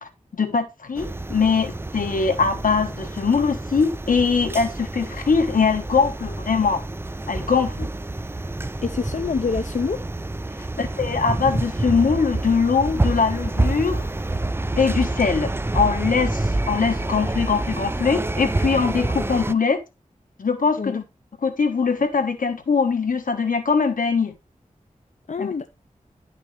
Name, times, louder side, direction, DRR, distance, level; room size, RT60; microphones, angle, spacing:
voice 1, 0.0-6.8 7.3-7.9 10.8-14.1 14.8-19.8 20.4-21.0 21.4-24.3 25.4-25.5, left 5 dB, 90° left, 1.4 m, -22 dB
sound 1, 1.0-19.5, right 2 dB, 15° right, 0.5 m, -28 dB
voice 2, 8.8-10.0 20.8-21.0 25.3-25.7, left 5 dB, 60° left, 0.6 m, -26 dB
11.0 x 5.9 x 3.3 m
wide cardioid pair, 60°, 14 cm